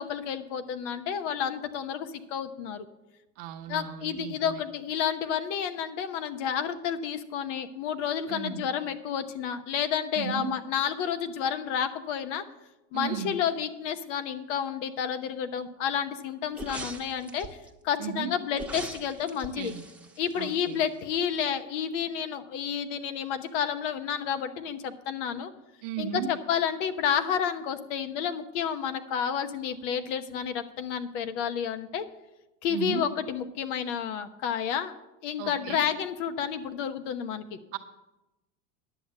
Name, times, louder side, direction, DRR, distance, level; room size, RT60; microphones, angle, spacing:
voice 1, 0.0-2.9 3.7-12.4 12.9-17.5 17.8-19.7 20.2-25.5 26.0-32.1 32.6-34.9 35.2-37.6, left 8 dB, 75° left, 10 dB, 1.0 m, -30 dB
voice 2, 3.4-4.6 8.3-8.7 10.2-10.5 12.9-13.3 18.0-18.3 19.5-19.8 20.4-20.8 25.8-26.3 32.7-33.0 35.4-35.9 37.7-37.8, right 8 dB, 60° right, 6 dB, 1.2 m, -35 dB
sound 1, 16.5-17.7 18.5-21.0 21.3-21.4, right 2 dB, 5° right, 0.9 m, -41 dB
10.0 x 6.6 x 7.6 m, 0.98 s
supercardioid pair, 120°, 37 cm